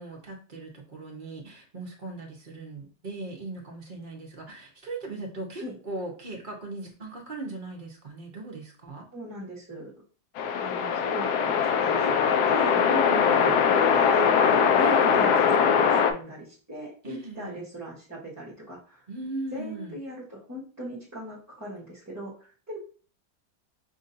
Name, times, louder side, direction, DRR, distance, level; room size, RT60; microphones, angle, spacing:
voice 1, 0.0-9.1 12.8-13.5 14.8-15.3 17.0-17.6 19.1-20.0, right 2 dB, 45° right, 0 dB, 0.7 m, -38 dB
voice 2, 9.1-9.9 10.6-12.8 13.4-14.7 15.0-19.0 19.5-22.8, right 1 dB, 10° right, -9 dB, 0.8 m, -40 dB
sound 1, 10.4-16.1, left 7 dB, 75° left, 1.0 m, -21 dB
6.0 x 2.7 x 2.6 m, 0.39 s
omnidirectional pair, 1.9 m